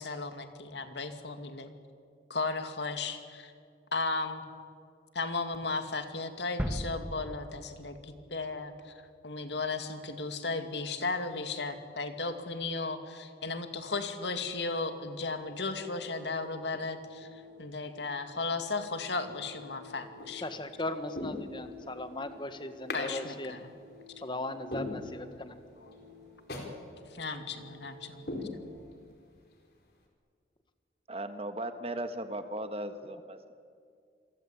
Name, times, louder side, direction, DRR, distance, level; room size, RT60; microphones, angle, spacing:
voice 1, 0.0-1.7 2.3-3.5 3.9-4.4 5.1-8.9 9.2-20.5 22.9-23.7 25.8-25.9 27.1-28.2, left 3 dB, 75° left, 7 dB, 2.4 m, -35 dB
sound 1, 6.6-8.5 8.9-9.0, equal, 5° right, 1.3 m, -38 dB
sound 2, 14.8-28.9, left 3 dB, 80° right, 6.1 m, -54 dB
sound 3, 20.1-20.5 21.1-22.0 22.9-23.1 23.5-23.6 24.1-24.2 24.7-25.6 25.9-26.0 26.5-26.8 27.1-27.2 27.7-27.9 28.3-29.2 29.5-29.6, left 2 dB, 55° left, 4.5 m, -39 dB
voice 2, 20.4-23.5 24.2-25.5, left 1 dB, 25° left, 9 dB, 1.4 m, -38 dB
voice 3, 31.1-33.5, right 1 dB, 35° right, 8 dB, 1.5 m, -37 dB
27.5 x 23.0 x 8.6 m, 2.2 s
head